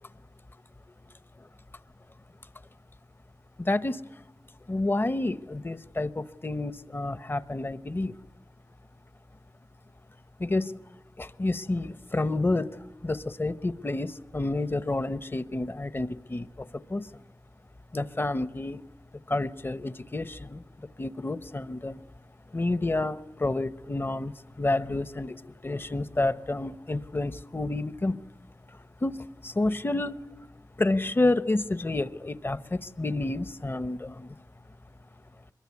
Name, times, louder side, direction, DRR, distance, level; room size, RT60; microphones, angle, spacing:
voice 1, 3.6-4.0 4.7-8.2 10.4-10.7 11.2-12.7 13.0-17.1 17.9-18.8 19.3-22.0 22.5-28.2 28.7-30.2 30.8-34.4, left 2 dB, 35° left, 14 dB, 0.9 m, -29 dB
24.0 x 22.0 x 9.6 m, 1.0 s
wide cardioid pair, 60°, 7 cm